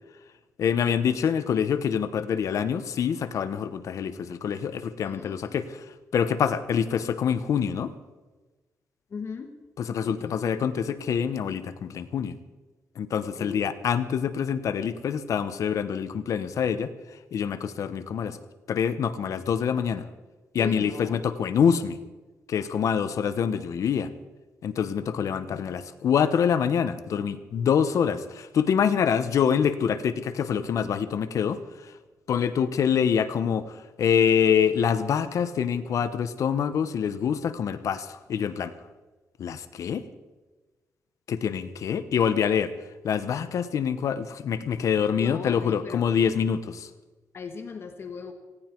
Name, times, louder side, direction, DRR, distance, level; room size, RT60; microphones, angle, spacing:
voice 1, 0.6-5.8 6.1-7.9 9.8-12.4 13.0-16.9 17.3-18.4 18.7-20.1 20.5-22.0 22.5-24.1 24.6-31.9 32.3-38.7 39.4-40.0 41.3-42.7 43.0-46.9, left 7 dB, 65° left, 12 dB, 0.9 m, -25 dB
voice 2, 5.0-5.5 9.1-9.6 10.0-10.4 13.2-13.7 20.5-21.2 45.1-46.2 47.3-48.3, left 5 dB, 45° left, 7 dB, 1.3 m, -38 dB
19.0 x 16.5 x 4.5 m, 1.2 s
wide cardioid pair, 150°, 6 cm